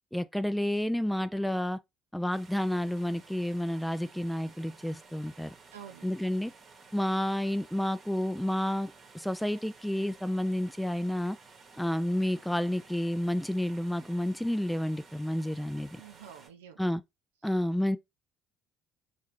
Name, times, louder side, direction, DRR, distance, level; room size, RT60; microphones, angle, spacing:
voice 1, 0.1-1.8 2.1-5.6 6.0-6.5 6.9-11.4 11.8-16.0 16.8-17.0 17.4-18.0, left 1 dB, ahead, 0.4 m, -30 dB
sound 1, 2.3-16.5, right 4 dB, 35° right, 1.0 m, -55 dB
voice 2, 5.7-6.1 16.0-16.8, right 9 dB, 70° right, 0.5 m, -48 dB
4.3 x 2.4 x 3.0 m
figure-of-eight pair, 50°, 0 cm